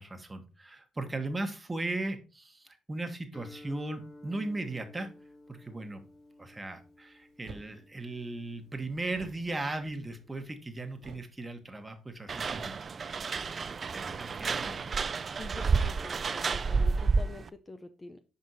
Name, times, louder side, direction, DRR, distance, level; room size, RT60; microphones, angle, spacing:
voice 1, 0.0-5.1 5.5-6.0 6.4-12.8 13.9-14.9, right 2 dB, 20° right, 6 dB, 1.3 m, -37 dB
Guitar, 3.3-11.1, left 2 dB, 60° left, 2.5 m, -55 dB
sound 1, 7.4-7.7 9.1-10.6 11.0-11.4 11.7-11.8 12.1-13.7, right 4 dB, 80° right, 1.6 m, -51 dB
sound 2, 12.3-17.5, right 4 dB, 45° right, 0.4 m, -30 dB
voice 2, 15.4-18.2, left 2 dB, 25° left, 10 dB, 0.6 m, -46 dB
6.4 x 5.2 x 4.1 m, 0.33 s
cardioid pair, 95°, 0 cm